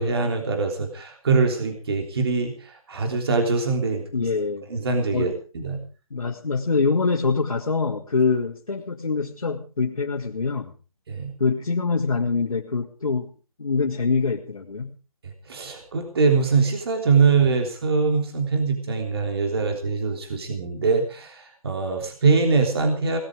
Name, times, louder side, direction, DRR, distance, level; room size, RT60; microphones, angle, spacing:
voice 1, 0.0-4.0 4.7-5.8 11.1-11.3 15.5-23.2, right 4 dB, 45° right, 4 dB, 3.5 m, -23 dB
voice 2, 4.1-4.7 5.1-5.3 6.1-10.7 11.4-13.3 13.6-15.0, left 4 dB, 70° left, -1 dB, 2.5 m, -24 dB
19.5 x 12.5 x 5.0 m, 0.37 s
figure-of-eight pair, 160°, 18 cm